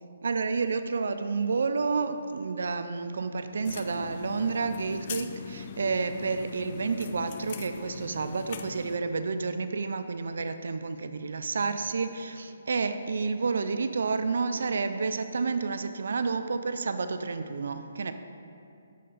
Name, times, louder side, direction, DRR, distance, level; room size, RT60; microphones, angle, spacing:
voice 1, 0.2-18.1, right 4 dB, 75° right, 9 dB, 0.3 m, -30 dB
sound 1, 3.7-9.0, left 6 dB, 40° left, 0.3 m, -41 dB
5.6 x 4.2 x 5.2 m, 2.6 s
hypercardioid pair, 155°, 0 cm